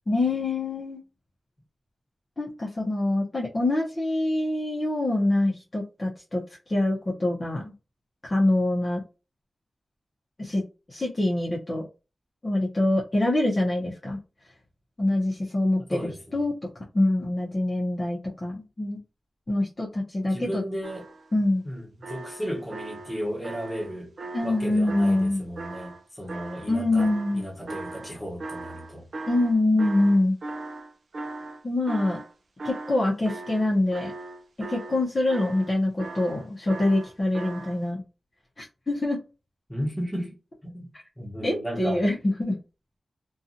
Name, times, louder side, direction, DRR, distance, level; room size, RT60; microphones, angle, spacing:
voice 1, 0.1-1.0 2.4-6.4 6.7-7.7 8.2-9.0 10.4-10.6 10.9-11.8 12.4-14.2 15.0-16.6 16.9-19.0 19.5-20.6 21.3-21.6 24.3-25.4 26.7-27.4 29.3-30.4 31.6-32.2 32.6-34.1 34.7-38.0 38.6-39.2 41.4-42.6, left 1 dB, 30° left, 0.7 m, -25 dB
voice 2, 15.8-16.4 20.3-21.1 21.6-24.1 24.4-29.1 39.7-40.4 40.6-42.0, equal, 5° left, 1.0 m, -34 dB
sound 1, 20.8-21.4 22.0-26.0 26.3-32.3 32.6-37.8, right 2 dB, 65° right, 0.4 m, -39 dB
2.6 x 2.3 x 2.7 m
wide cardioid pair, 120°, 0 cm